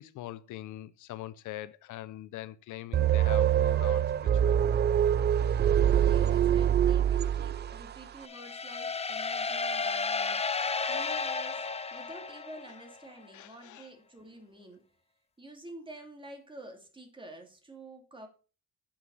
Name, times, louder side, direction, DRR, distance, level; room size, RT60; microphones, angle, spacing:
voice 1, 0.0-4.6 11.9-12.0 13.3-13.9, left 14 dB, 80° left, 0.6 m, -43 dB
sound 1, 2.9-7.9, right 10 dB, 35° right, 0.4 m, -25 dB
voice 2, 5.6-14.9 15.4-18.3, right 1 dB, 15° right, 2.6 m, -49 dB
sound 2, 8.2-13.0, left 4 dB, 20° left, 0.7 m, -33 dB
8.5 x 5.9 x 5.5 m
cardioid pair, 90°, 30 cm